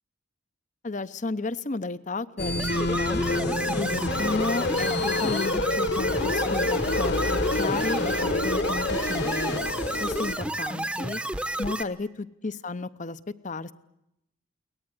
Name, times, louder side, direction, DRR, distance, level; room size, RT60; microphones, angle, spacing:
voice 1, 0.8-3.2 3.7-9.6 10.0-11.2 11.6-13.7, left 3 dB, 35° left, 15 dB, 0.8 m, -33 dB
sound 1, 2.4-10.3, left 2 dB, 55° left, 1.7 m, -27 dB
sound 2, 2.5-11.8, right 1 dB, 5° right, 1.0 m, -31 dB
23.0 x 19.0 x 9.9 m, 0.84 s
head